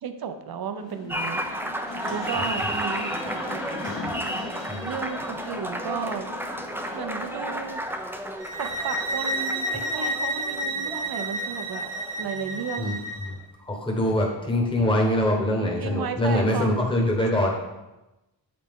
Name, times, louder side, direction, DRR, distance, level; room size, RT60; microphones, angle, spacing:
voice 1, 0.0-1.4 2.1-3.1 4.8-6.3 6.9-7.8 8.6-11.9 12.2-13.0 15.6-16.7, right 6 dB, 55° right, 8 dB, 0.6 m, -33 dB
sound 1, 0.8-7.7, left 3 dB, 75° left, 1.2 m, -39 dB
Applause, 1.1-12.9, right 1 dB, 5° right, 0.4 m, -33 dB
voice 2, 2.3-2.7 4.7-4.9 12.8-13.3 13.6-17.5, left 1 dB, 10° left, -1 dB, 1.1 m, -24 dB
sound 2, 8.4-13.3, right 1 dB, 70° right, 0.9 m, -30 dB
7.7 x 4.2 x 3.6 m, 1.0 s
wide cardioid pair, 110°, 46 cm